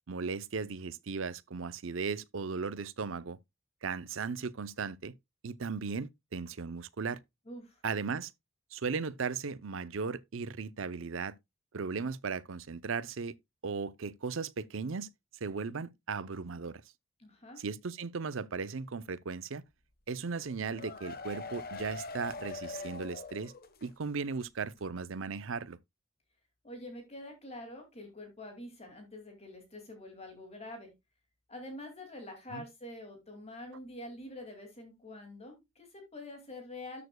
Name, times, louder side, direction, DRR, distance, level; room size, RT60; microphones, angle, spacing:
voice 1, 0.1-3.4 3.8-5.1 5.4-7.2 7.8-8.3 8.7-11.4 11.7-13.3 13.6-15.1 15.4-16.8 17.6-19.6 20.1-23.5 23.8-25.8 32.5-32.6, right 5 dB, 70° right, 0.6 m, -36 dB
voice 2, 7.5-7.8 17.2-17.6 26.6-30.9 31.5-37.0, left 1 dB, 30° left, 2.4 m, -46 dB
sound 1, 20.4-24.1 24.4-24.5 24.8-24.9, left 3 dB, 45° left, 1.2 m, -43 dB
13.0 x 6.9 x 2.2 m
head